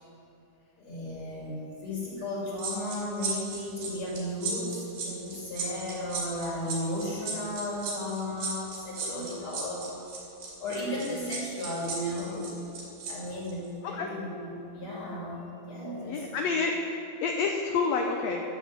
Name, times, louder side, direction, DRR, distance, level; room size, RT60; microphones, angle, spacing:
voice 1, 0.8-9.9 10.6-12.5 13.0-16.2, left 1 dB, 45° left, -5 dB, 3.5 m, -35 dB
sound 1, 2.6-13.1 13.4-13.7, right 5 dB, 80° right, 3.9 m, -36 dB
voice 2, 10.9-11.2 13.9-14.1 16.1-18.4, left 4 dB, 70° left, 2 dB, 1.8 m, -29 dB
14.5 x 6.8 x 7.8 m, 2.9 s
omnidirectional pair, 3.5 m